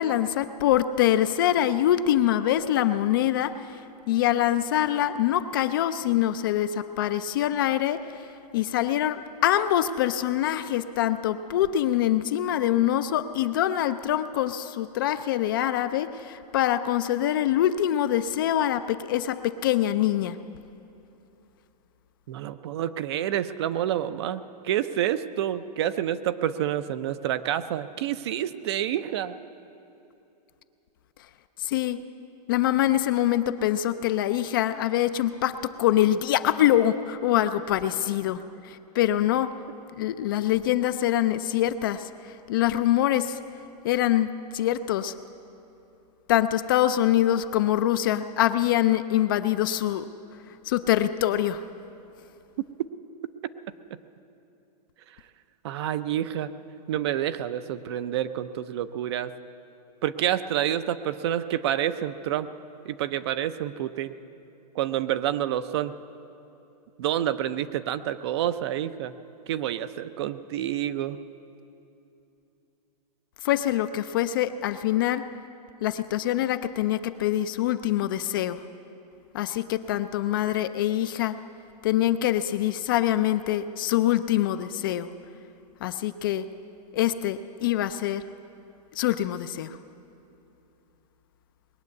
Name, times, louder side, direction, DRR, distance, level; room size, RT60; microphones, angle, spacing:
voice 1, 0.0-3.8 4.1-8.3 8.5-20.4 31.6-32.0 32.5-39.6 39.9-43.4 43.8-45.1 46.3-50.0 50.6-51.7 73.4-75.3 75.8-78.6 79.3-81.4 81.8-85.1 85.8-86.5 86.9-88.2 88.9-89.8, left 12 dB, 30° left, 11 dB, 0.4 m, -24 dB
voice 2, 22.3-29.4 55.1-55.2 55.6-56.5 56.9-59.3 60.0-62.5 62.9-64.1 64.7-65.9 67.0-69.1 69.5-71.2, right 11 dB, 40° right, 13 dB, 0.5 m, -28 dB
20.5 x 7.4 x 9.4 m, 2.9 s
hypercardioid pair, 165°, 21 cm